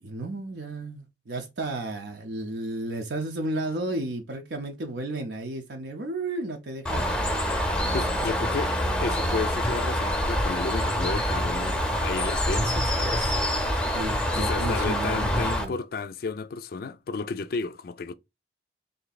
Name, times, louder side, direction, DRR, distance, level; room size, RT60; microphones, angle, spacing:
voice 1, 0.0-7.1 13.9-15.8, right 2 dB, 65° right, 0.6 m, -33 dB
Bird, 6.9-15.7, equal, 5° left, 0.6 m, -26 dB
voice 2, 7.9-8.7 9.0-13.3 14.3-18.1, left 4 dB, 55° left, 0.4 m, -32 dB
3.3 x 2.7 x 4.0 m
head